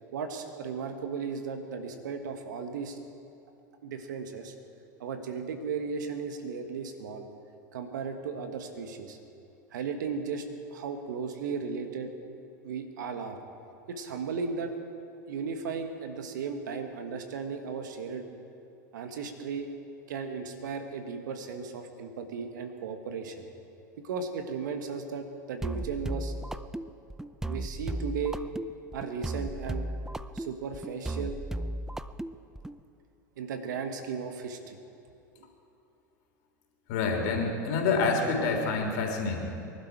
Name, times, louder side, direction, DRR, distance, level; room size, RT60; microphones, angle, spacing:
voice 1, 0.1-3.0 3.8-4.5 5.0-7.3 7.7-9.2 9.7-12.1 12.6-13.4 13.9-14.7 15.3-18.3 18.9-19.7 20.1-23.5 24.0-26.3 27.4-28.4 28.9-29.9 30.3-31.4 33.4-34.8 35.4-35.5, right 5 dB, 75° right, 6 dB, 1.6 m, -35 dB
sound 1, 25.6-32.8, right 1 dB, 5° right, 0.4 m, -35 dB
voice 2, 36.9-39.4, left 4 dB, 65° left, 2 dB, 3.2 m, -27 dB
24.0 x 12.0 x 4.7 m, 2.8 s
hypercardioid pair, 85°, 10 cm